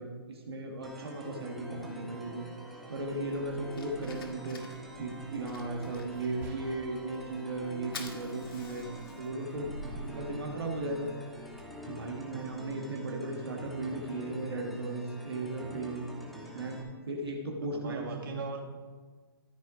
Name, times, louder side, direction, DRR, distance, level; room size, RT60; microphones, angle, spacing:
voice 1, 0.0-2.4 2.9-4.6 5.0-8.9 9.2-11.1 11.9-16.0 16.5-18.1, right 2 dB, 85° right, 0 dB, 1.5 m, -36 dB
sound 1, 0.8-16.8, equal, ahead, 1.3 m, -46 dB
Fire, 3.0-12.7, left 1 dB, 65° left, 1.7 m, -49 dB
sound 2, 6.4-7.1, right 4 dB, 35° right, 2.0 m, -48 dB
voice 2, 10.1-10.5 17.7-18.6, right 4 dB, 55° right, 1 dB, 1.9 m, -40 dB
13.5 x 4.7 x 4.9 m, 1.5 s
hypercardioid pair, 140°, 13 cm